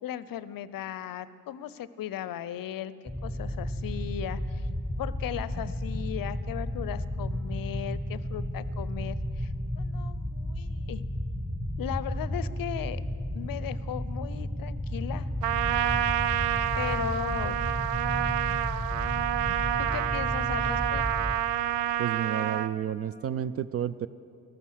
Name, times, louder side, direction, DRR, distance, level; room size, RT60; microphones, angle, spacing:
voice 1, 0.0-4.7 5.0-11.0 11.8-13.0 13.3-15.3 16.8-17.6 19.8-21.0, left 11 dB, 45° left, 16 dB, 0.7 m, -37 dB
sound 1, 3.1-21.3, left 1 dB, 10° right, 1.9 m, -33 dB
Trumpet, 15.4-22.7, right 12 dB, 90° right, 0.5 m, -28 dB
voice 2, 22.0-24.1, right 9 dB, 35° right, 16 dB, 0.4 m, -31 dB
13.5 x 13.0 x 6.4 m, 2.3 s
hypercardioid pair, 55°, 47 cm